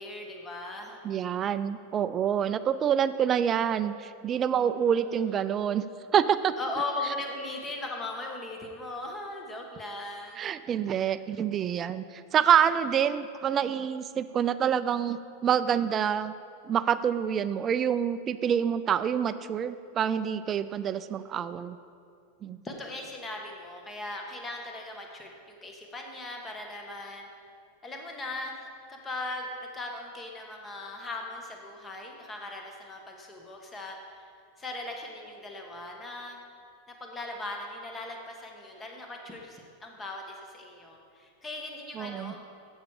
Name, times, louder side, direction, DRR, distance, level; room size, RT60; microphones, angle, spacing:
voice 1, 0.0-1.0 5.0-5.3 6.6-10.5 22.6-27.3 27.8-34.2 34.6-36.4 37.0-42.4, left 2 dB, 20° left, 2 dB, 1.3 m, -39 dB
voice 2, 1.0-5.8 6.1-6.5 10.4-16.3 16.6-21.8 22.4-22.6 42.0-42.3, right 8 dB, 30° right, 13 dB, 0.3 m, -27 dB
7.4 x 7.1 x 4.8 m, 2.3 s
hypercardioid pair, 115°, 0 cm